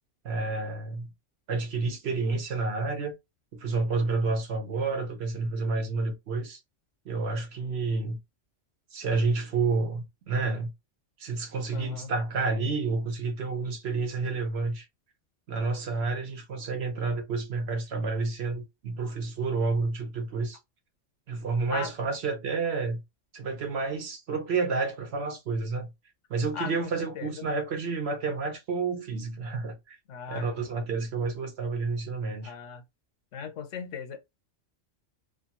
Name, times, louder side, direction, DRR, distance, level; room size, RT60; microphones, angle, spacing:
voice 1, 0.2-1.1 1.5-3.1 3.5-6.6 7.0-8.2 8.9-10.7 11.2-14.9 15.5-20.6 21.3-23.0 23.3-25.9 26.3-30.0 30.3-32.5, right 4 dB, 60° right, 1.0 m, -30 dB
voice 2, 11.7-12.1 21.7-21.9 26.5-27.5 30.1-30.5 32.4-32.8 33.3-34.2, left 6 dB, 75° left, 1.0 m, -38 dB
2.5 x 2.3 x 2.8 m
omnidirectional pair, 1.3 m